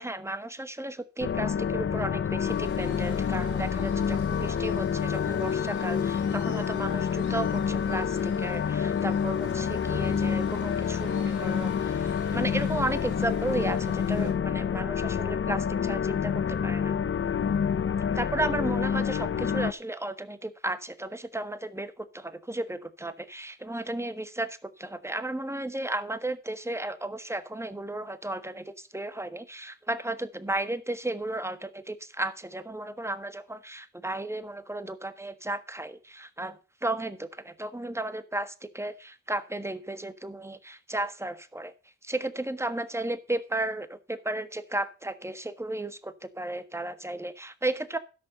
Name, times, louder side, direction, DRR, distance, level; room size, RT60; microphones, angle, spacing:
voice 1, 0.0-16.9 18.1-41.7 42.0-48.0, right 2 dB, 10° right, 12 dB, 1.4 m, -34 dB
sound 1, 1.2-19.7, left 7 dB, 40° left, 0.8 m, -28 dB
Waves surf, 2.4-14.3, left 5 dB, 80° left, 3.6 m, -49 dB
12.5 x 5.4 x 6.6 m, 0.34 s
supercardioid pair, 45°, 30 cm